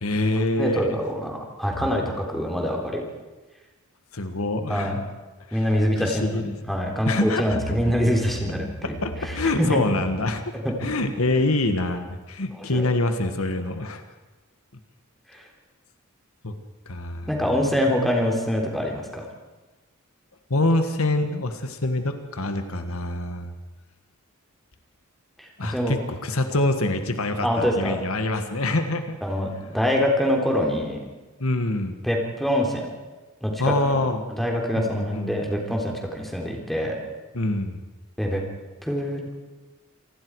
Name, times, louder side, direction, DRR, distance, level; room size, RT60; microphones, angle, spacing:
voice 1, 0.0-1.0 4.1-5.0 5.5-5.7 6.0-6.8 7.1-7.8 8.4-8.5 8.8-10.5 10.8-14.0 16.4-16.5 16.8-17.3 20.5-23.5 25.6-29.2 31.4-32.0 33.6-34.3 34.8-35.3 37.3-37.8, left 2 dB, 75° left, 7 dB, 1.7 m, -25 dB
voice 2, 0.6-3.0 4.7-5.0 5.5-9.0 9.2-9.8 12.5-12.9 15.3-15.4 17.3-19.3 20.7-21.0 25.4-25.9 27.4-28.0 29.2-31.0 32.0-32.9 33.4-33.7 34.0-37.0 38.2-38.4 38.8-39.2, equal, ahead, 0 dB, 3.6 m, -25 dB
27.5 x 19.5 x 4.9 m, 1.2 s
head